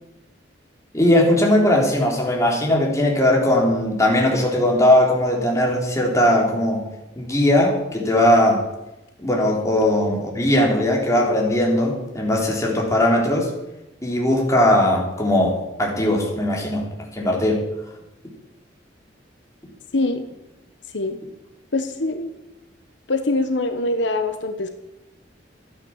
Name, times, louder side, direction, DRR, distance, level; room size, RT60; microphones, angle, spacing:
voice 1, 0.9-6.9 7.2-8.6 9.2-13.5 14.0-16.9 17.1-17.6, left 1 dB, 15° left, -1 dB, 3.5 m, -19 dB
voice 2, 21.7-22.3 23.1-24.7, left 2 dB, 80° left, 7 dB, 1.2 m, -23 dB
13.0 x 9.6 x 7.3 m, 0.97 s
head